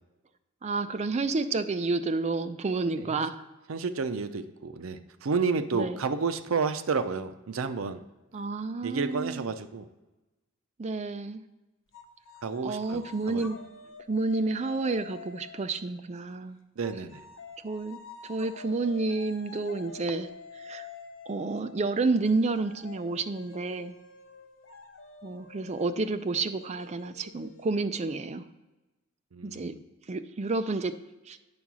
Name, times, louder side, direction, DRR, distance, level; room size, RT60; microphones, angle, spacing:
voice 1, 0.6-3.4 5.7-6.0 8.3-9.5 10.8-11.4 12.6-13.6 14.1-16.6 17.6-20.3 20.7-20.9 21.3-23.9 25.2-28.5 29.4-29.8 30.1-31.0 31.3-31.4, right 3 dB, 35° right, 10 dB, 0.4 m, -30 dB
voice 2, 3.7-8.0 8.8-9.9 12.4-13.0 13.3-13.5 16.8-17.2 29.3-29.8, right 5 dB, 80° right, 11 dB, 0.5 m, -31 dB
sound 1, 11.9-15.8 16.8-28.1, left 5 dB, 65° left, 0.7 m, -48 dB
8.7 x 3.7 x 6.1 m, 1.1 s
head